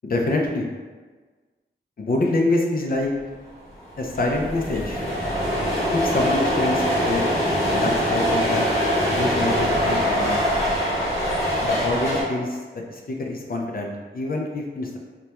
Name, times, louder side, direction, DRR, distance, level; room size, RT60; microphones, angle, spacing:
voice 1, 0.0-0.7 2.0-3.1 4.0-5.0 5.9-7.2 7.7-8.6 9.1-10.4 11.6-12.6 12.9-15.0, left 2 dB, 45° left, 0 dB, 0.4 m, -25 dB
sound 1, 3.5-3.6 3.7-12.2, equal, 15° left, 1.1 m, -23 dB
3.3 x 2.2 x 2.8 m, 1.4 s
wide cardioid pair, 80°, 20 cm